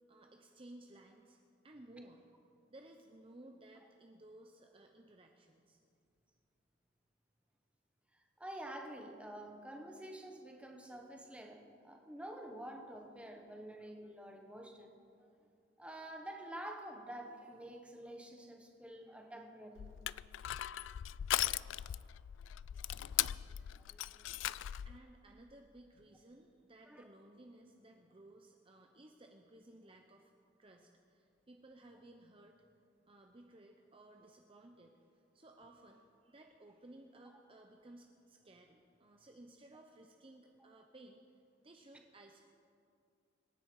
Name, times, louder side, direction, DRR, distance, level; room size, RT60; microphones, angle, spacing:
voice 1, 0.1-2.3 2.7-5.8 24.8-30.3 30.6-32.6 33.1-41.2 41.6-42.4, right 1 dB, 30° right, 3 dB, 0.8 m, -58 dB
voice 2, 8.1-14.9 15.8-19.9 20.8-20.9 22.9-23.2 23.8-24.3 26.9-27.1, right 1 dB, 5° right, 3 dB, 1.4 m, -49 dB
Crushing, 19.8-25.0, left 13 dB, 80° left, 0.3 m, -38 dB
26.0 x 10.5 x 4.8 m, 2.4 s
head